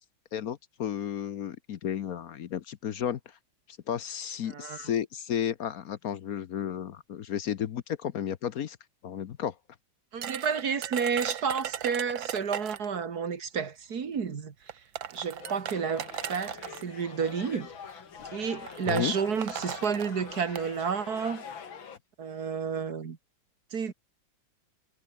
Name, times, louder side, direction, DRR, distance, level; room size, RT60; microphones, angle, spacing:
voice 1, 0.3-3.2 3.9-8.8 9.0-9.5 18.9-19.1, left 9 dB, 60° left, 1.1 m, -33 dB
voice 2, 4.5-4.9 10.1-14.5 15.1-17.7 18.3-21.5 22.2-23.2 23.7-23.9, right 6 dB, 55° right, 2.3 m, -31 dB
sound 1, 10.2-13.0 14.0-14.1 14.7-16.8 17.7-18.0 18.3-18.4 18.7-20.7, right 10 dB, 85° right, 1.9 m, -37 dB
sound 2, 15.4-22.0, left 7 dB, 90° left, 2.9 m, -45 dB
omnidirectional pair, 2.1 m